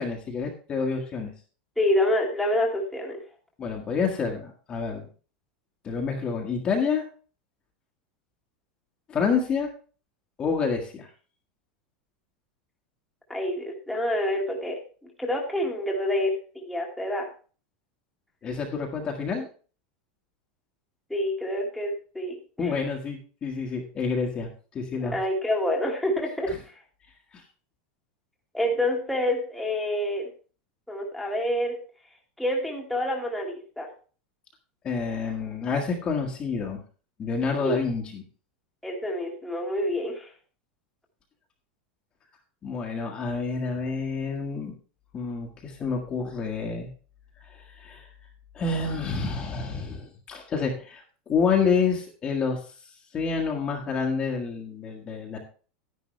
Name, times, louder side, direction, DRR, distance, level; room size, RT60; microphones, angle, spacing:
voice 1, 0.0-1.3 3.6-5.1 5.8-7.0 9.1-9.7 10.4-11.1 18.4-19.5 22.6-25.2 27.3-27.4 34.8-36.8 37.2-38.2 42.6-44.7 45.1-46.9 47.7-48.1 48.5-51.0 51.3-52.6 53.1-55.4, left 5 dB, 20° left, 0 dB, 1.6 m, -28 dB
voice 2, 1.8-3.2 13.3-14.8 15.2-17.3 21.1-22.7 25.1-26.8 28.5-30.3 30.9-31.8 32.4-33.9 37.6-37.8 38.8-40.3, left 1 dB, ahead, -2 dB, 1.7 m, -27 dB
10.5 x 10.5 x 3.3 m, 0.37 s
supercardioid pair, 170°, 5 cm